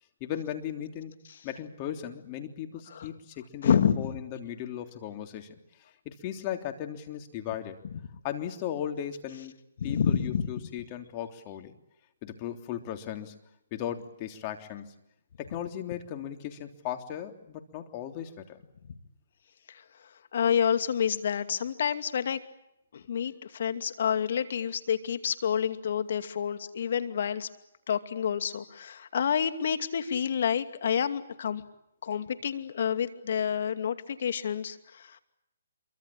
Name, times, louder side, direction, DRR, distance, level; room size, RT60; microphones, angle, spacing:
voice 1, 0.2-1.1 1.4-5.6 6.1-7.8 8.2-9.6 9.8-11.7 12.2-13.4 13.7-14.9 15.4-18.6, left 10 dB, 30° left, 5 dB, 3.3 m, -37 dB
voice 2, 3.6-4.1 9.8-10.5 19.7-19.8 20.3-22.4 22.9-27.5 27.9-31.6 32.0-35.2, left 8 dB, 55° left, 9 dB, 2.5 m, -28 dB
27.0 x 24.0 x 8.8 m, 0.81 s
hypercardioid pair, 150°, 0 cm